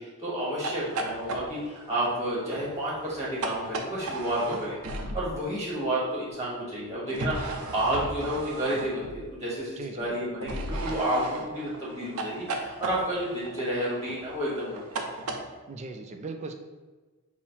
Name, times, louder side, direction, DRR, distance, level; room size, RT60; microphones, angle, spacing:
voice 1, 0.0-15.0, right 1 dB, 15° right, -6 dB, 1.1 m, -31 dB
sound 1, 0.5-5.5 7.1-9.4 10.4-15.4, right 2 dB, 90° right, 0.5 m, -36 dB
voice 2, 9.8-10.2 15.7-16.5, right 3 dB, 30° right, 6 dB, 0.3 m, -38 dB
5.5 x 2.0 x 4.3 m, 1.3 s
head